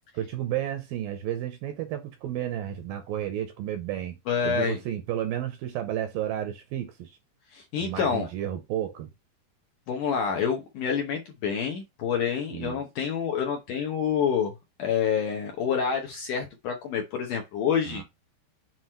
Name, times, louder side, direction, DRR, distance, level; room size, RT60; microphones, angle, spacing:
voice 1, 0.1-4.2 4.4-7.1 7.8-9.1 12.5-12.8 17.9-18.0, right 11 dB, 80° right, 2.2 m, -32 dB
voice 2, 4.3-4.8 7.5-8.3 9.9-14.5 14.8-18.0, left 7 dB, 70° left, 2.0 m, -27 dB
7.7 x 3.1 x 4.3 m
omnidirectional pair, 4.8 m